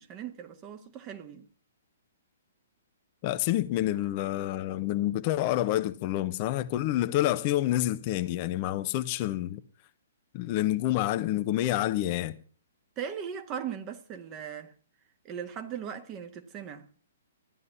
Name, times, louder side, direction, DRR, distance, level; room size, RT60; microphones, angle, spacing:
voice 1, 0.0-1.5 13.0-14.7 15.2-16.9, right 8 dB, 25° right, 1.6 m, -38 dB
voice 2, 3.2-9.6 10.3-12.3, left 14 dB, 35° left, 0.8 m, -28 dB
14.5 x 11.0 x 5.8 m
figure-of-eight pair, 120°, 0 cm